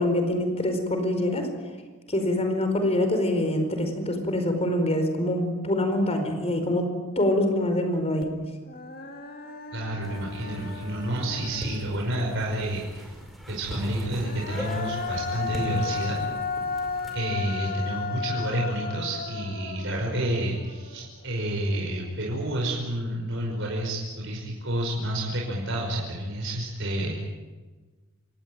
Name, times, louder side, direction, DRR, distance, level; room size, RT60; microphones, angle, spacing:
voice 1, 0.0-1.5 2.1-6.9 7.2-8.3, left 1 dB, 30° left, 6 dB, 4.7 m, -25 dB
Human voice, 8.2-8.3 8.7-12.3 14.0-21.2, left 4 dB, 45° left, 2.1 m, -35 dB
voice 2, 9.7-13.1 13.5-16.2 17.1-27.1, right 1 dB, 60° right, -2 dB, 5.3 m, -29 dB
sound 1, 10.0-17.1, equal, ahead, 4.8 m, -40 dB
27.5 x 18.5 x 9.2 m, 1.3 s
head